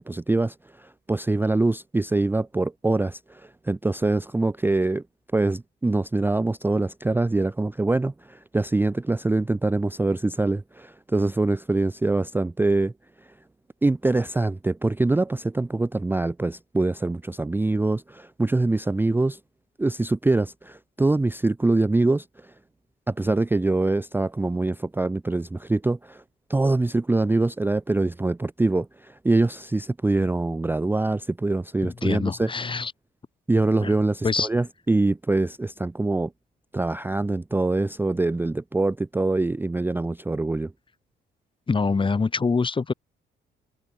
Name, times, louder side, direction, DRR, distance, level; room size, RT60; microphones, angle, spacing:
voice 1, 0.0-5.0 5.3-12.9 13.2-13.3 13.8-19.4 19.8-22.5 23.1-26.2 26.5-32.5 33.5-36.3 36.7-40.7, right 2 dB, 10° right, 0.5 m, -24 dB
voice 2, 31.8-32.9 33.8-33.9 34.2-34.5 41.7-42.9, left 4 dB, 25° left, 1.1 m, -25 dB
cardioid pair, 90°, 20 cm